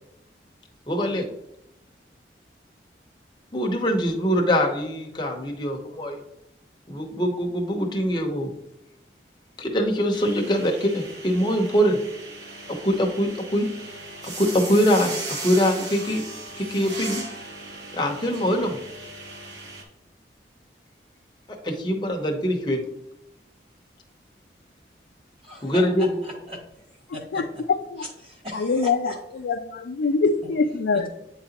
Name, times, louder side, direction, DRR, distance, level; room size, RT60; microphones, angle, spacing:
voice 1, 0.9-1.3 3.5-6.2 6.9-8.5 9.6-12.0 12.7-13.7 14.2-16.2 16.6-17.2 17.9-18.8 21.6-22.8 25.6-26.2, equal, 25° left, 1 dB, 0.8 m, -23 dB
sound 1, 10.1-19.8, right 2 dB, 85° right, 1.2 m, -37 dB
voice 2, 25.4-26.6 27.1-27.6 28.0-29.2 30.0-30.1 30.9-31.1, left 1 dB, 30° right, -1 dB, 1.1 m, -38 dB
voice 3, 27.3-28.1 28.5-31.1, left 4 dB, 90° left, 4 dB, 0.4 m, -24 dB
8.5 x 3.9 x 2.9 m, 0.81 s
head